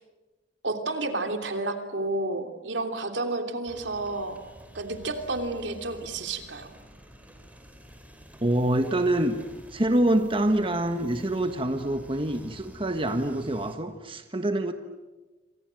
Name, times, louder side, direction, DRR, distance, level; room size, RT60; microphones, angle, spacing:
voice 1, 0.6-4.4 4.7-6.7, right 2 dB, 80° right, 5 dB, 3.1 m, -31 dB
sound 1, 3.7-13.8, equal, 10° right, 4.0 m, -50 dB
voice 2, 8.4-9.3 9.7-14.7, right 1 dB, 30° right, 7 dB, 1.4 m, -25 dB
28.5 x 26.5 x 7.7 m, 1.2 s
head